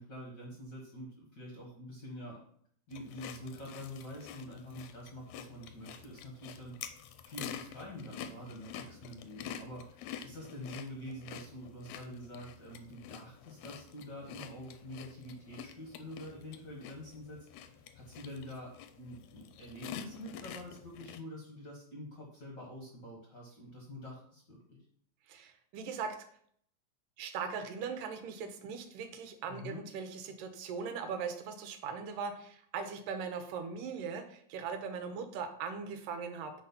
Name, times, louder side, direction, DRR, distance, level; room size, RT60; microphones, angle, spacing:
voice 1, 0.0-2.4 2.9-6.8 7.2-24.8 29.5-29.8, left 1 dB, 50° left, 0 dB, 1.4 m, -46 dB
sound 1, 2.9-21.2, left 9 dB, 75° left, 1.8 m, -48 dB
voice 2, 25.3-26.2 27.2-36.5, right 6 dB, 80° right, 8 dB, 2.5 m, -39 dB
9.1 x 4.3 x 5.5 m, 0.63 s
omnidirectional pair, 3.9 m